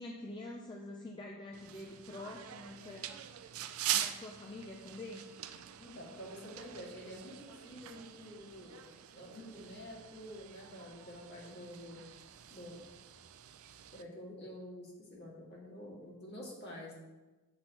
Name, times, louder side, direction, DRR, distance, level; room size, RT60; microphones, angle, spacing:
voice 1, 0.0-3.2 3.9-5.3, left 2 dB, 20° left, 0 dB, 0.4 m, -46 dB
sound 1, 1.5-14.0, right 11 dB, 75° right, 0.4 m, -44 dB
voice 2, 5.8-8.8 9.1-12.0 12.5-12.8 13.9-16.9, equal, 50° left, -5 dB, 2.1 m, -48 dB
7.8 x 6.1 x 3.0 m, 1.2 s
head